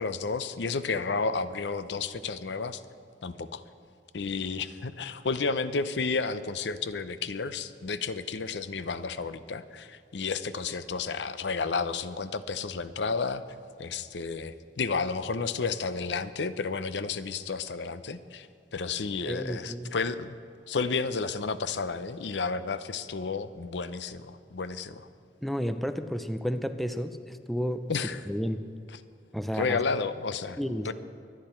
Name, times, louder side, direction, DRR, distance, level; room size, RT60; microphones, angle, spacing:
voice 1, 0.0-2.8 3.2-3.6 4.1-13.4 13.8-20.4 20.7-25.1 27.9-28.2 29.5-30.6 30.8-30.9, left 4 dB, 80° left, 13 dB, 0.6 m, -31 dB
voice 2, 19.3-19.9 25.4-27.9 28.3-28.7 29.3-29.8 30.6-30.9, equal, ahead, 9 dB, 0.5 m, -31 dB
24.0 x 9.9 x 4.4 m, 2.5 s
head